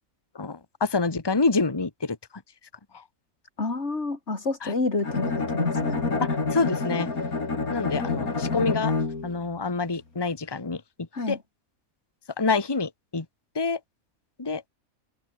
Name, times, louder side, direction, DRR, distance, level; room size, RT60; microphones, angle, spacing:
voice 1, 0.3-2.2 4.6-4.7 6.5-7.1 7.7-8.9 9.2-10.8 11.3-11.4 12.4-13.2 13.5-13.8 14.4-14.6, left 4 dB, 15° left, 1.4 m, -26 dB
voice 2, 3.6-6.0 11.1-11.4, left 3 dB, 50° left, 3.7 m, -29 dB
Bowed string instrument, 5.0-9.4, left 3 dB, 80° left, 3.8 m, -28 dB
open air
omnidirectional pair, 1.5 m